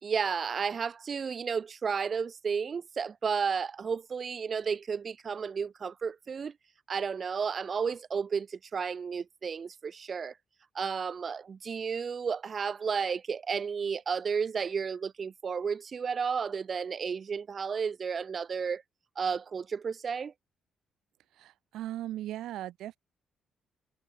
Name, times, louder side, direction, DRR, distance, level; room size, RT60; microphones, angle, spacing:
voice 1, 0.0-6.5 6.9-10.3 10.7-18.8 19.2-20.3, right 6 dB, 45° right, 2.5 m, -32 dB
voice 2, 21.3-23.0, right 13 dB, 85° right, 4.5 m, -38 dB
cardioid pair, 90°, 0 cm